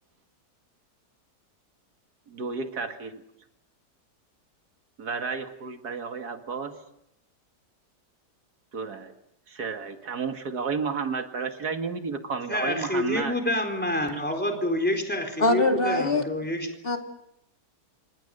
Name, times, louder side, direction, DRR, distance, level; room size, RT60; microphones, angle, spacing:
voice 1, 2.3-3.2 5.0-6.8 8.7-9.1 9.5-13.3, right 5 dB, 70° right, 7 dB, 2.5 m, -32 dB
voice 2, 12.5-16.7, left 1 dB, 5° left, 4 dB, 4.0 m, -27 dB
voice 3, 15.4-16.2 16.8-17.0, left 2 dB, 35° left, 4 dB, 2.8 m, -22 dB
28.0 x 24.5 x 6.7 m, 0.79 s
omnidirectional pair, 1.8 m